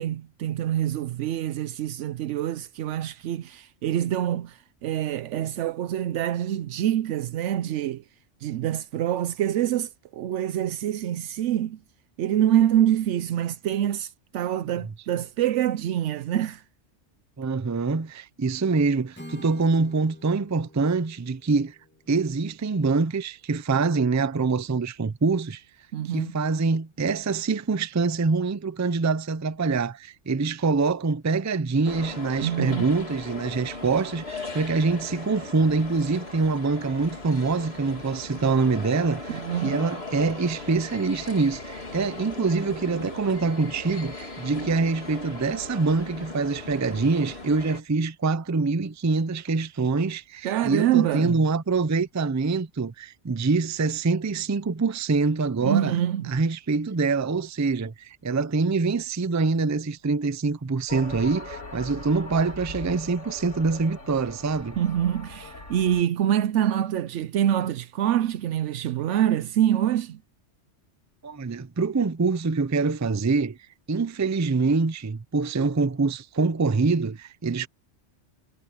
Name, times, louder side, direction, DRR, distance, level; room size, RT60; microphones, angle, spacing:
voice 1, 0.0-8.0 8.4-11.8 12.2-16.6 25.9-26.3 32.4-32.9 39.3-39.8 50.4-51.4 55.6-56.4 64.8-70.2, right 11 dB, 80° right, 0.9 m, -25 dB
voice 2, 17.4-21.8 22.1-25.6 26.1-56.0 56.3-64.8 71.2-73.6 73.9-77.7, right 4 dB, 25° right, 0.4 m, -25 dB
Acoustic guitar / Strum, 19.1-23.1, equal, 10° left, 2.2 m, -47 dB
sound 1, 31.8-47.8, left 2 dB, 60° left, 3.6 m, -38 dB
sound 2, 60.9-66.0, left 1 dB, 85° left, 3.9 m, -40 dB
omnidirectional pair, 1.2 m